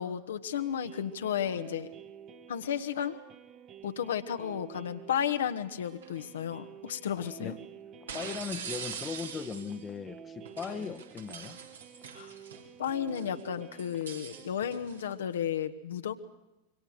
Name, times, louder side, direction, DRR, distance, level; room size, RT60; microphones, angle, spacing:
voice 1, 0.0-1.9 2.5-3.2 3.8-7.5 10.7-10.9 12.1-12.3 12.8-16.1, left 9 dB, 65° left, 8 dB, 1.5 m, -33 dB
sound 1, 0.5-14.5, right 8 dB, 30° right, 1.6 m, -51 dB
sound 2, 5.9-6.2 8.1-9.8 10.4-12.7 13.1-15.1, right 7 dB, 65° right, 3.1 m, -43 dB
voice 2, 8.0-11.6, left 6 dB, 20° left, 10 dB, 1.3 m, -38 dB
26.0 x 24.0 x 6.7 m, 1.0 s
figure-of-eight pair, 90°, 0 cm